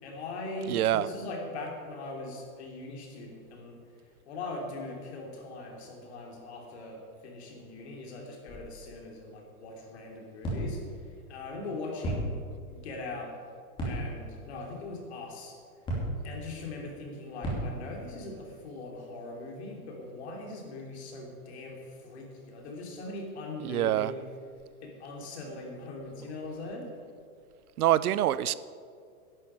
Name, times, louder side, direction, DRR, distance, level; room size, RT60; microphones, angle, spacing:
voice 1, 0.0-3.8 4.3-10.8 11.3-12.4 12.6-13.4 13.8-15.5 16.2-24.2 24.8-26.9, left 2 dB, 50° left, 1 dB, 3.3 m, -40 dB
voice 2, 0.7-1.1 23.6-24.1 27.8-28.5, right 13 dB, 90° right, 17 dB, 0.7 m, -25 dB
sound 1, 8.5-9.0 10.4-11.1 12.0-12.6 13.8-14.4 15.9-16.4 17.4-18.0, right 1 dB, 10° left, 2.8 m, -34 dB
11.0 x 8.8 x 9.0 m, 2.2 s
supercardioid pair, 175°, 43 cm